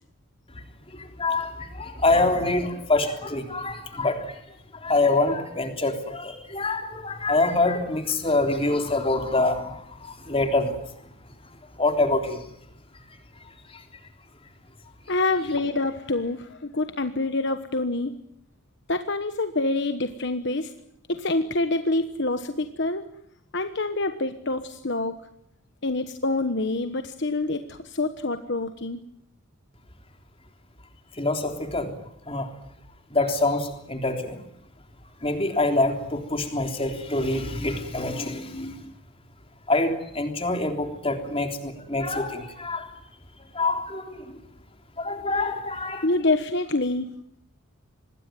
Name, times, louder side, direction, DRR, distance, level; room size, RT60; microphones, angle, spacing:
voice 1, 0.9-4.4 4.8-10.8 11.8-12.5 13.7-13.8 31.2-32.0 32.3-32.5 33.1-34.4 35.2-38.9 39.7-42.9 43.5-44.4 45.0-46.0, left 2 dB, 25° left, 5 dB, 3.5 m, -25 dB
voice 2, 15.1-18.1 18.9-20.7 21.1-23.1 23.5-25.2 25.8-29.0 46.0-47.1, left 2 dB, 55° left, 9 dB, 1.2 m, -26 dB
25.5 x 20.5 x 9.2 m, 0.74 s
head